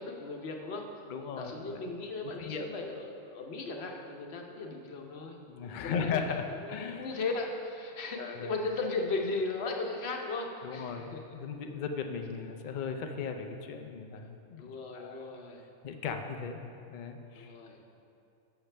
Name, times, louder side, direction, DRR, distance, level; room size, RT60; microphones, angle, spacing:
voice 1, 0.0-5.4 5.6-6.4 6.6-11.2 14.6-15.6 17.3-17.8, left 3 dB, 55° left, 2 dB, 1.0 m, -37 dB
voice 2, 1.1-1.9 2.4-2.7 5.5-7.1 8.2-8.5 10.6-15.3 15.8-16.6 16.9-17.5, left 6 dB, 85° left, 5 dB, 0.4 m, -37 dB
11.5 x 6.6 x 3.3 m, 2.6 s
omnidirectional pair, 1.5 m